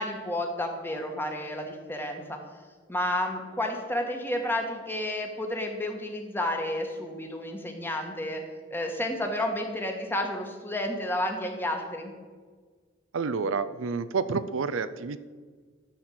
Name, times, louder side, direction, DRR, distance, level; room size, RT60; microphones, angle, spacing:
voice 1, 0.0-2.4 2.9-8.4 8.7-12.1, left 1 dB, 10° left, 3 dB, 1.3 m, -31 dB
voice 2, 13.1-15.2, right 5 dB, 80° right, 13 dB, 0.5 m, -29 dB
12.0 x 4.4 x 7.7 m, 1.5 s
head